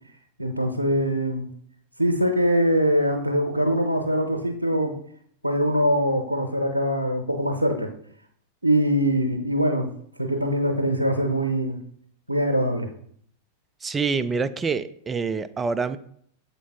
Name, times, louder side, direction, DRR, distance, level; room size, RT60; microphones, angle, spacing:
voice 1, 0.4-1.5 2.0-5.0 5.4-7.9 8.6-9.9 10.2-11.8 12.3-12.9, equal, 85° right, 5 dB, 0.8 m, -23 dB
voice 2, 13.8-16.0, right 5 dB, 15° right, 13 dB, 0.3 m, -26 dB
7.3 x 4.6 x 3.4 m, 0.65 s
figure-of-eight pair, 90°, 0 cm